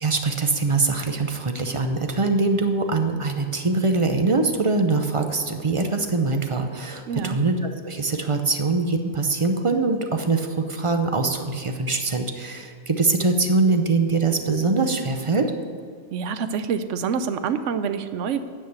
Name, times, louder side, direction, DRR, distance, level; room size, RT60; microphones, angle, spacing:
voice 1, 0.0-15.5, right 3 dB, 35° right, 6 dB, 0.5 m, -23 dB
voice 2, 7.1-7.4 16.1-18.4, right 6 dB, 70° right, 11 dB, 1.0 m, -26 dB
9.5 x 5.7 x 8.1 m, 2.1 s
omnidirectional pair, 1.4 m